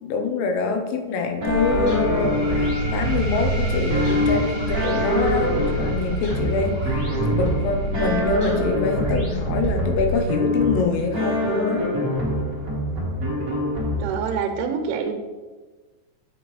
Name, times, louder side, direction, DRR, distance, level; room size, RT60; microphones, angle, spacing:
voice 1, 0.0-11.9, left 4 dB, 85° left, 4 dB, 3.3 m, -25 dB
sound 1, 1.4-10.2, right 2 dB, 65° left, 0.7 m, -29 dB
sound 2, 1.4-14.3, left 1 dB, 40° right, 1.2 m, -25 dB
sound 3, 1.5-12.6, right 2 dB, 50° left, 3.5 m, -34 dB
voice 2, 14.0-15.1, right 6 dB, 80° right, 5 dB, 3.2 m, -26 dB
9.1 x 6.4 x 3.1 m, 1.3 s
omnidirectional pair, 5.7 m